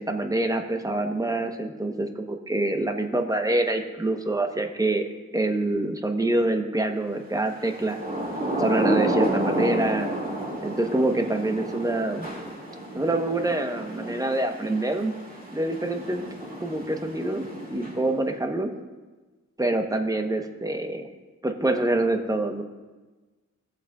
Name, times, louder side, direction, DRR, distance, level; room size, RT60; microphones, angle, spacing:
voice 1, 0.0-5.0 5.3-8.0 8.6-10.1 10.6-12.3 12.9-15.1 15.5-16.2 16.6-18.7 19.6-21.1 21.4-22.6, right 2 dB, 10° right, 5 dB, 0.9 m, -26 dB
Thunder / Rain, 7.7-18.3, right 1 dB, 30° right, 2.5 m, -30 dB
19.5 x 6.8 x 2.4 m, 1.3 s
cardioid pair, 70°, 30 cm